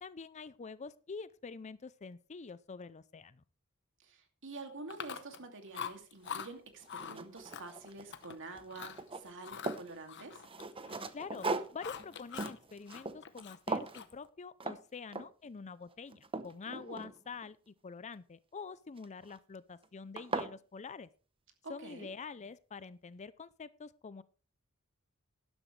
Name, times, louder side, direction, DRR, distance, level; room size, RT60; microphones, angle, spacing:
voice 1, 0.0-3.4 11.1-11.5 11.7-21.1 21.7-24.2, left 5 dB, 30° left, 17 dB, 0.5 m, -46 dB
voice 2, 4.0-10.4 16.7-17.1 21.6-22.1, right 3 dB, 60° right, 5 dB, 2.5 m, -48 dB
Chewing mastication, 4.9-5.5 5.7-6.5 6.9-7.2 7.5-8.4 8.7-9.0 9.4-11.1 11.3-12.6 12.9-14.3, left 8 dB, 55° left, 1.0 m, -44 dB
sound 1, 6.2-6.3 6.8-8.3 8.5-9.9 10.4-13.4 13.7-14.0 14.6-14.8 15.1-15.5 15.9-17.5 19.0-19.4 19.8-19.9 20.2-20.5, right 3 dB, 25° right, 0.8 m, -39 dB
12.5 x 11.5 x 3.3 m, 0.35 s
head